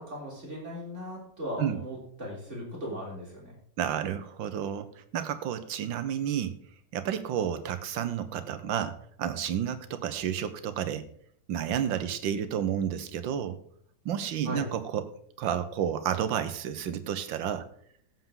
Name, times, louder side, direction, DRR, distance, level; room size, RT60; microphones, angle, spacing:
voice 1, 0.0-3.6 14.5-14.7, equal, 35° right, -3 dB, 3.6 m, -38 dB
voice 2, 3.8-6.5 6.9-11.1 11.5-13.6 14.0-15.1 15.4-17.7, right 9 dB, 75° right, 11 dB, 1.6 m, -31 dB
15.5 x 7.4 x 3.7 m, 0.62 s
omnidirectional pair, 2.2 m